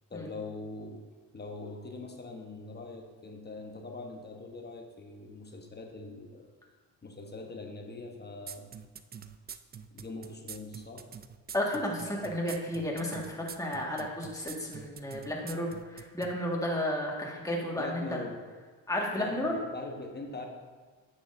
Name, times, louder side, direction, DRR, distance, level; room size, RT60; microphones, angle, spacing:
voice 1, 0.1-1.1 1.3-6.5 7.0-8.8 9.9-11.1 17.8-18.4 19.2-20.5, left 3 dB, 25° left, 2 dB, 1.0 m, -42 dB
sound 1, 8.5-16.3, right 7 dB, 25° right, 0.3 m, -45 dB
voice 2, 11.5-18.2 18.9-19.5, left 1 dB, 10° left, -2 dB, 1.7 m, -32 dB
9.0 x 6.4 x 2.6 m, 1.4 s
supercardioid pair, 75°, 42 cm